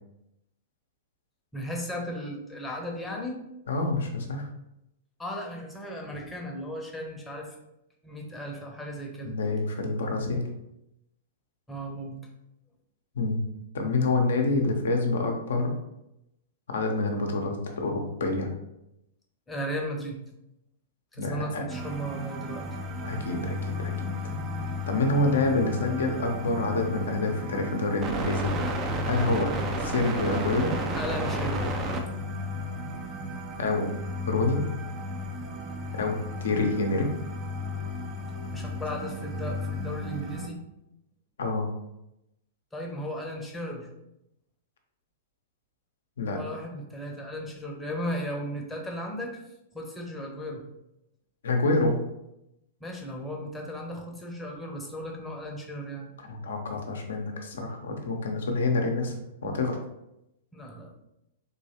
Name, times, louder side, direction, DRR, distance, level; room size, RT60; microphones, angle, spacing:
voice 1, 1.5-3.4 5.2-7.6 8.0-9.3 11.7-12.2 19.5-20.2 21.1-22.6 30.9-31.8 38.5-40.6 42.7-43.9 46.3-49.4 49.7-50.7 52.8-56.1 60.5-60.9, equal, 5° left, 0 dB, 0.8 m, -36 dB
voice 2, 3.7-4.5 9.2-10.5 13.2-13.4 13.7-15.7 16.7-18.5 21.2-21.6 23.0-23.9 24.2-24.3 24.9-28.5 29.0-29.5 29.8-30.7 33.6-33.9 34.3-34.6 35.9-37.1 41.4-41.7 46.2-46.4 51.4-52.0 56.2-59.2 59.4-59.8, left 2 dB, 65° left, 3 dB, 0.7 m, -27 dB
sound 1, 21.7-40.5, left 1 dB, 25° right, 0.5 m, -33 dB
3.8 x 3.0 x 2.8 m, 0.85 s
figure-of-eight pair, 105°, 0 cm